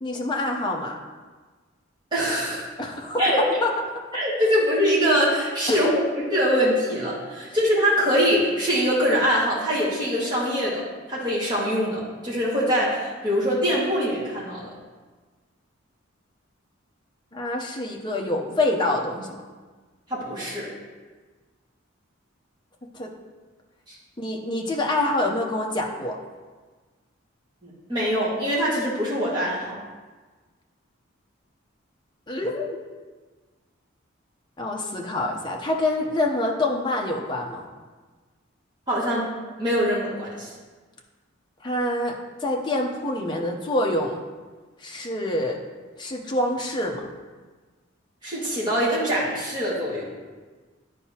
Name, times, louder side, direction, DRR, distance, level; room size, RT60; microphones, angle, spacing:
voice 1, 0.0-1.0 2.8-3.7 5.7-5.8 17.3-19.4 22.9-23.1 24.2-26.2 32.3-32.8 34.6-37.7 41.6-42.1 42.4-44.2 44.8-45.6 46.0-47.1, left 1 dB, 20° left, 0 dB, 0.7 m, -26 dB
voice 2, 2.1-2.7 3.2-3.4 4.1-5.9 6.3-10.8 11.1-14.7 20.1-20.7 27.6-29.8 38.9-39.3 39.6-40.5 48.2-50.0, equal, 20° right, -8 dB, 1.9 m, -23 dB
10.0 x 4.6 x 2.9 m, 1.4 s
head